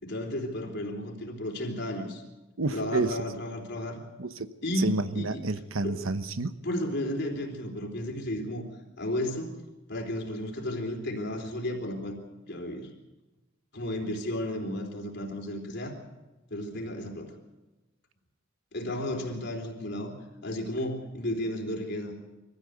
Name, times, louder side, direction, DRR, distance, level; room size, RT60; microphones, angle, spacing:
voice 1, 0.0-2.2 2.7-4.0 4.6-5.4 5.8-6.0 6.6-8.6 9.0-9.6 9.9-12.2 12.4-12.9 13.7-16.0 16.5-17.3 18.7-20.1 20.4-22.1, left 1 dB, 55° left, 1 dB, 3.8 m, -33 dB
voice 2, 2.6-3.2 4.2-6.5, right 3 dB, 85° right, 12 dB, 1.1 m, -30 dB
23.0 x 15.0 x 8.1 m, 1.1 s
head